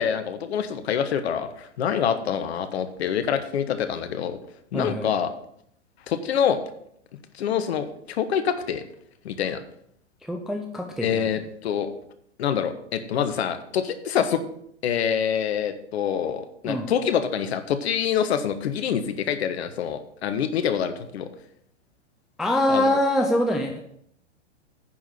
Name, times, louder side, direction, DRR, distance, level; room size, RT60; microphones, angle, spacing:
voice 1, 0.0-4.4 4.7-5.3 6.1-6.6 7.4-8.8 9.2-9.6 11.0-11.9 12.4-14.4 14.8-21.3 22.7-23.0, left 8 dB, 60° left, 10 dB, 1.2 m, -26 dB
voice 2, 4.7-5.1 10.2-11.3 16.6-16.9 22.4-23.8, left 1 dB, ahead, 3 dB, 0.3 m, -24 dB
9.9 x 4.8 x 7.5 m, 0.71 s
figure-of-eight pair, 105°, 36 cm